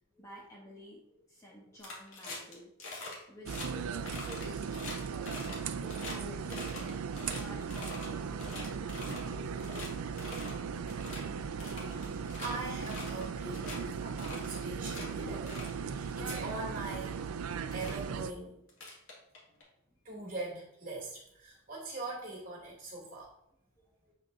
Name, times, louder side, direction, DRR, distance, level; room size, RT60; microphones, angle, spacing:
voice 1, 0.1-2.7 3.3-4.7 5.6-6.8 7.1-10.6 23.8-24.1, equal, 15° left, -3 dB, 1.1 m, -52 dB
sound 1, 1.8-2.5 2.8-3.2 3.5-3.7 4.0-6.2 6.5-8.1 8.4-9.3 9.6-9.9 10.2-10.6 10.9-11.2 11.6-12.5 12.9-13.3 13.5-13.8 14.2-15.1 15.5-15.7 16.1-16.5 17.3-17.4 17.7-18.0 18.7-19.6, left 2 dB, 65° left, 2.2 m, -44 dB
sound 2, 3.5-18.3, right 6 dB, 85° right, 0.4 m, -38 dB
voice 2, 11.7-17.2 17.7-18.6 20.0-23.3, right 2 dB, 35° right, -4 dB, 2.8 m, -42 dB
7.8 x 6.4 x 2.7 m, 0.77 s
head